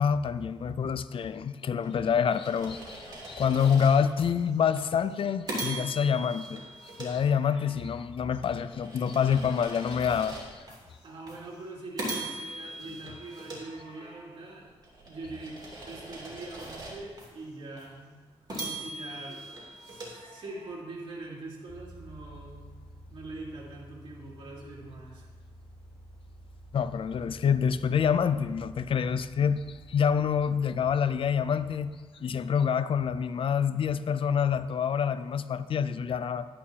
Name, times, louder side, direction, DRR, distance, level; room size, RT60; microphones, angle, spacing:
voice 1, 0.0-6.6 7.0-10.6 12.9-13.0 18.5-18.6 26.7-31.9 32.2-36.5, left 7 dB, 55° left, 12 dB, 0.5 m, -27 dB
sound 1, 1.8-4.3 4.8-4.9 5.5-7.8 8.3-10.8 11.3-11.4 12.0-14.3 14.8-17.3 17.8-17.9 18.5-20.8, right 1 dB, 40° right, 3.0 m, -40 dB
voice 2, 11.0-14.7 15.1-18.1 18.5-19.5 19.8-22.7 23.1-25.3, right 2 dB, 55° right, -4 dB, 2.8 m, -43 dB
sound 2, 21.7-31.9, right 1 dB, 10° left, 2.2 m, -51 dB
11.0 x 11.0 x 2.8 m, 1.4 s
cardioid pair, 110°, 11 cm